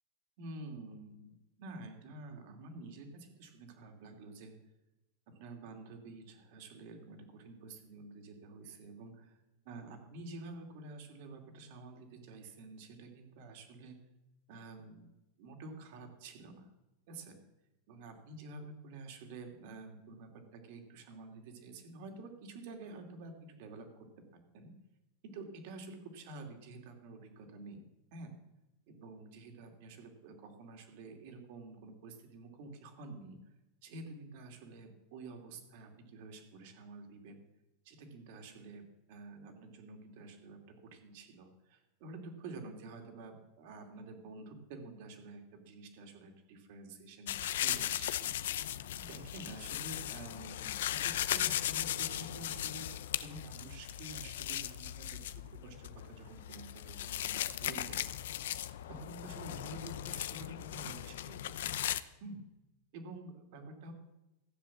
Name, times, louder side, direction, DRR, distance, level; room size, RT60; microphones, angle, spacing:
voice 1, 0.4-4.5 5.3-9.4 9.6-14.0 14.5-15.1 15.4-16.7 17.1-17.4 17.9-23.9 24.2-24.3 24.5-24.7 25.2-28.3 28.9-33.5 33.8-37.4 37.8-38.8 39.1-47.4 47.6-48.3 48.9-52.9 53.2-58.0 58.9-61.9 62.2-62.4 62.9-63.9, right 2 dB, 55° right, 5 dB, 2.8 m, -49 dB
sound 1, 47.3-62.0, left 12 dB, 80° left, 0.6 m, -37 dB
15.5 x 7.7 x 7.4 m, 0.97 s
supercardioid pair, 150°, 0 cm